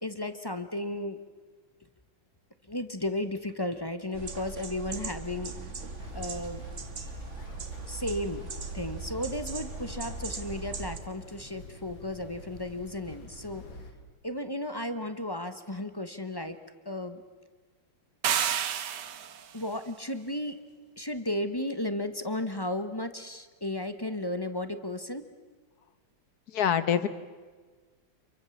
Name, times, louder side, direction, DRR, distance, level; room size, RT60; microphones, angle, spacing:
voice 1, 0.0-1.2 2.7-5.5 6.1-6.7 7.9-8.5 8.7-13.6 14.2-16.6 16.8-17.2 19.5-20.6 21.0-25.3, left 1 dB, 15° left, 10 dB, 0.9 m, -34 dB
sound 1, 4.1-11.0, right 4 dB, 40° right, 1.8 m, -39 dB
sound 2, 6.0-13.9, left 2 dB, 85° left, 3.4 m, -47 dB
sound 3, 18.2-19.5, right 9 dB, 65° right, 1.5 m, -29 dB
voice 2, 26.5-27.1, left 9 dB, 55° left, 13 dB, 1.6 m, -26 dB
28.0 x 24.0 x 7.2 m, 1.4 s
omnidirectional pair, 2.1 m